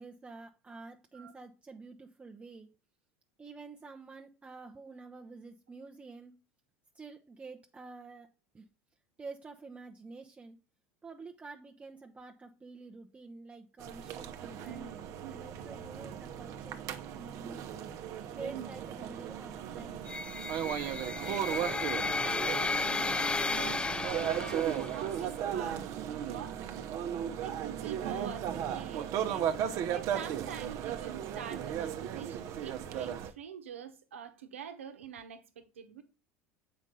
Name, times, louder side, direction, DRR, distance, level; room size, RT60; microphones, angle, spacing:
voice 1, 0.0-2.7 3.4-6.3 6.9-8.3 8.5-8.7 9.2-10.6 11.0-16.8 17.1-17.7 18.3-20.0, right 4 dB, 20° right, 0.7 m, -48 dB
sound 1, 13.8-33.3, right 9 dB, 55° right, 0.8 m, -36 dB
sound 2, 20.1-25.1, left 3 dB, 15° left, 0.4 m, -33 dB
voice 2, 21.2-26.9 27.4-29.5 29.9-36.0, right 8 dB, 85° right, 1.0 m, -46 dB
7.2 x 5.2 x 3.9 m
hypercardioid pair, 75°, 7 cm